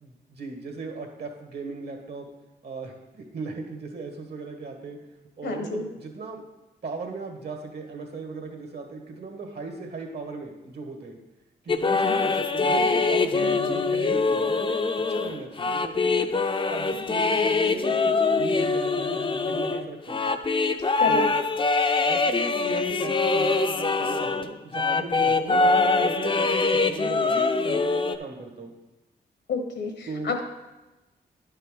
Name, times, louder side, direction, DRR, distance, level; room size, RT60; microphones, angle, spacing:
voice 1, 0.0-2.3 2.6-5.0 5.4-6.4 6.8-11.2 11.6-14.8 15.1-16.3 16.7-20.4 21.1-21.4 22.0-28.7 30.1-30.3, right 3 dB, 65° right, 2 dB, 1.7 m, -37 dB
voice 2, 5.4-5.9 21.0-21.3 29.5-30.5, left 4 dB, 80° left, 5 dB, 1.3 m, -29 dB
sound 1, 11.7-24.5 24.7-28.1, left 3 dB, 30° left, 0.5 m, -23 dB
10.5 x 5.6 x 3.8 m, 1.1 s
cardioid pair, 60°, 18 cm